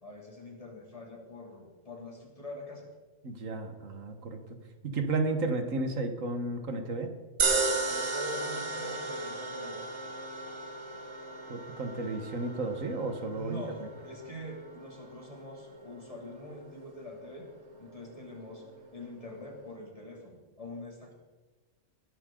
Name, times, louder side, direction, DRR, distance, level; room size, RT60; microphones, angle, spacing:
voice 1, 0.0-2.9 7.9-9.9 13.3-17.5 17.8-18.6 18.9-21.1, left 1 dB, 25° left, -1 dB, 2.9 m, -44 dB
voice 2, 3.2-4.4 4.8-7.1 11.5-13.6, right 3 dB, 90° right, 6 dB, 1.8 m, -33 dB
sound 1, 7.4-19.7, right 3 dB, 65° right, 1.6 m, -36 dB
20.5 x 11.5 x 3.8 m, 1.3 s
omnidirectional pair, 1.3 m